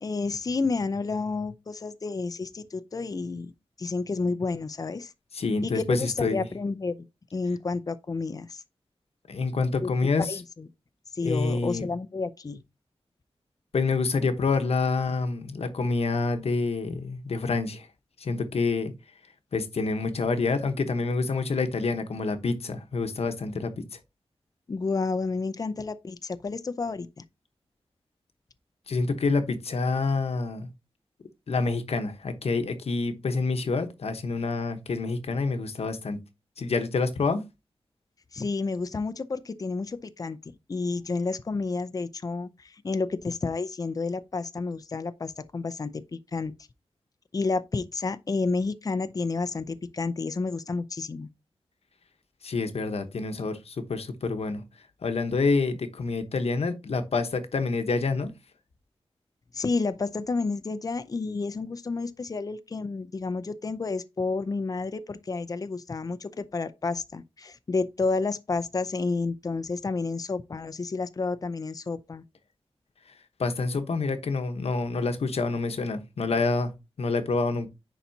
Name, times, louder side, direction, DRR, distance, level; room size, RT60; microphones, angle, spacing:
voice 1, 0.0-3.5 3.8-5.1 5.6-7.0 7.3-8.6 9.8-9.9 10.3-10.7 11.1-12.6 24.7-27.2 38.3-40.4 40.7-46.5 47.3-51.3 59.5-72.2, left 3 dB, 35° left, 0.5 m, -30 dB
voice 2, 5.3-6.5 9.3-10.3 11.2-11.9 13.7-17.9 18.2-18.9 19.5-23.7 28.9-30.7 31.5-36.2 36.6-37.4 52.4-54.6 55.0-58.3 73.4-76.7 77.0-77.7, left 4 dB, 75° left, 1.1 m, -27 dB
10.0 x 4.1 x 2.7 m
wide cardioid pair, 115°, 10 cm